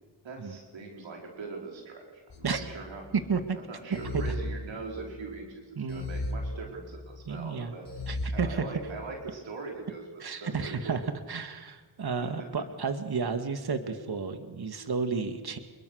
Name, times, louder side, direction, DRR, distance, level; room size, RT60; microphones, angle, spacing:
voice 1, 0.2-3.0 3.7-7.9 8.3-11.0 12.4-12.5, right 4 dB, 80° right, 0 dB, 4.7 m, -41 dB
sound 1, 2.3-3.3 3.9-5.2 5.9-7.2 7.9-9.0, left 1 dB, 65° left, 4.7 m, -36 dB
voice 2, 5.8-6.1 7.3-7.7 8.1-8.6 10.2-11.0 11.3-15.6, right 5 dB, 55° right, 8 dB, 2.2 m, -32 dB
28.5 x 22.5 x 6.6 m, 1.4 s
cardioid pair, 55°, 45 cm